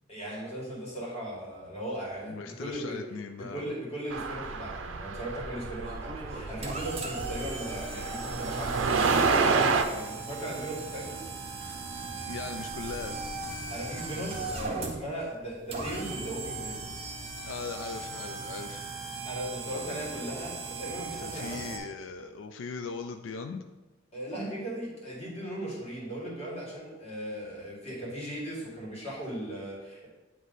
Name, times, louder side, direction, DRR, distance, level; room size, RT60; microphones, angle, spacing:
voice 1, 0.1-3.0 3.4-11.2 13.7-16.8 19.3-21.8 24.1-30.1, right 1 dB, 35° left, -5 dB, 2.0 m, -38 dB
voice 2, 2.3-3.6 12.3-13.2 17.5-18.9 21.2-23.6, left 4 dB, 90° left, 6 dB, 0.4 m, -39 dB
sound 1, 4.1-9.8, right 4 dB, 90° right, 0.5 m, -29 dB
sound 2, 5.8-21.8, right 3 dB, 35° right, 1.0 m, -38 dB
9.0 x 3.1 x 4.0 m, 1.2 s
head